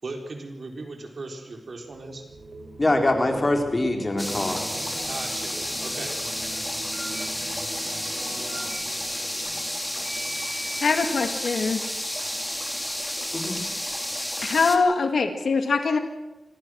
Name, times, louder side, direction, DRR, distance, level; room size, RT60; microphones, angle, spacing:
voice 1, 0.0-2.2 5.0-6.2, right 3 dB, 60° right, 3 dB, 3.9 m, -37 dB
sound 1, 1.8-11.2 11.6-11.9, right 2 dB, 90° right, 7.0 m, -43 dB
Telephone, 2.0-2.5 5.5-6.0 6.9-7.2 8.5-8.8 10.0-11.1, right 1 dB, 45° right, 5.4 m, -40 dB
voice 2, 2.8-4.6 13.3-13.7, left 2 dB, 35° left, 3 dB, 4.1 m, -23 dB
sound 2, 4.2-14.8, equal, 5° left, 2.8 m, -31 dB
voice 3, 10.6-11.8 14.4-16.0, left 4 dB, 80° left, 7 dB, 2.0 m, -23 dB
25.0 x 17.5 x 6.4 m, 1.0 s
wide cardioid pair, 70°, 0 cm